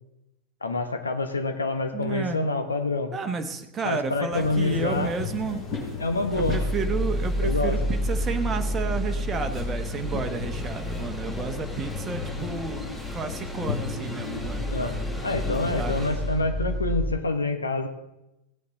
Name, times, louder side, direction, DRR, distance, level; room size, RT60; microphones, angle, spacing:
voice 1, 0.6-3.1 3.8-5.1 6.0-6.6 7.4-7.8 14.7-14.9 15.2-17.9, left 2 dB, 75° left, 6 dB, 1.2 m, -27 dB
voice 2, 1.9-2.4 3.1-5.6 6.3-12.8 13.1-14.7 15.8-15.9, right 5 dB, 20° right, 6 dB, 1.1 m, -31 dB
sound 1, 4.3-16.0, left 4 dB, 30° left, 4.7 m, -35 dB
sound 2, 6.3-17.2, equal, 5° left, 1.4 m, -31 dB
17.0 x 8.4 x 4.0 m, 0.92 s
figure-of-eight pair, 90°, 0 cm